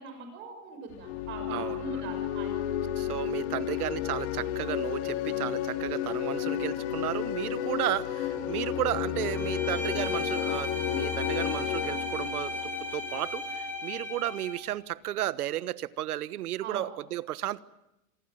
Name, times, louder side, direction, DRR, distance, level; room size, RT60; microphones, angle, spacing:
voice 1, 0.0-2.6 16.6-16.8, right 5 dB, 25° right, 6.7 m, -41 dB
sound 1, 0.9-13.6, left 11 dB, 50° left, 2.7 m, -32 dB
voice 2, 1.5-2.0 3.0-12.5 12.9-17.6, right 13 dB, 90° right, 1.4 m, -33 dB
Bowed string instrument, 9.3-14.7, left 2 dB, 5° left, 3.2 m, -36 dB
27.5 x 21.0 x 9.1 m
supercardioid pair, 175°, 44 cm